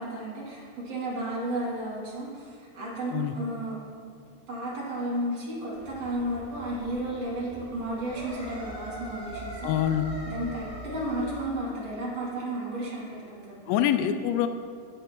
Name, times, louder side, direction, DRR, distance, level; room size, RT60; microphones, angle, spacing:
voice 1, 0.0-3.8 4.5-9.7 10.3-13.5, right 1 dB, 40° right, -7 dB, 2.9 m, -33 dB
sound 1, 5.7-11.4, equal, 20° right, 1.0 m, -41 dB
voice 2, 9.6-10.1 13.7-14.5, left 10 dB, 85° left, 9 dB, 3.2 m, -25 dB
14.5 x 9.0 x 3.1 m, 2.2 s
omnidirectional pair, 5.8 m